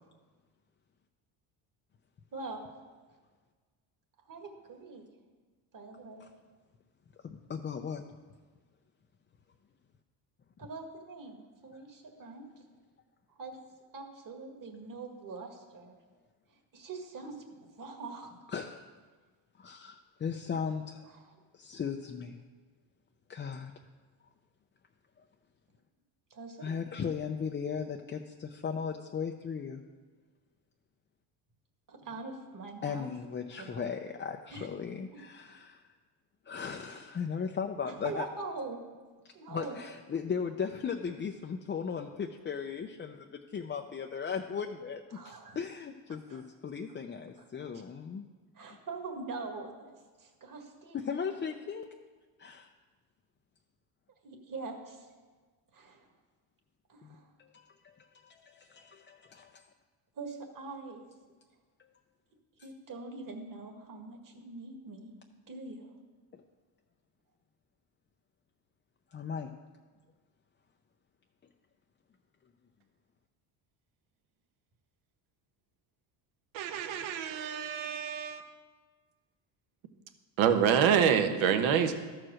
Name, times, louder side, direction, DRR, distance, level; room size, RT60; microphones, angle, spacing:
voice 1, 2.3-2.6 4.3-5.0 5.7-6.2 10.6-12.5 13.4-13.6 13.9-15.9 16.7-18.3 21.1-21.3 26.3-26.7 31.9-33.1 33.5-33.9 34.5-34.7 35.1-35.6 36.9-37.0 37.8-38.8 39.3-39.8 45.1-45.6 46.3-46.4 47.6-47.8 48.5-49.7 50.2-51.1 54.2-55.1 55.7-56.1 56.9-57.3 60.2-61.1 62.6-65.1 65.5-65.9, right 3 dB, 40° right, 3 dB, 1.9 m, -43 dB
voice 2, 7.2-8.0 18.5-18.8 19.6-21.0 21.5-22.4 23.3-23.7 26.6-29.8 32.8-35.8 36.5-38.3 39.5-48.3 51.0-51.9 52.4-52.7 57.0-59.6 61.8-61.9 66.3-66.4 69.1-69.5, left 6 dB, 25° left, 3 dB, 0.5 m, -37 dB
voice 3, 76.5-78.4 80.4-81.9, right 8 dB, 70° right, 8 dB, 1.1 m, -26 dB
13.0 x 4.7 x 6.3 m, 1.4 s
cardioid pair, 100°, 49 cm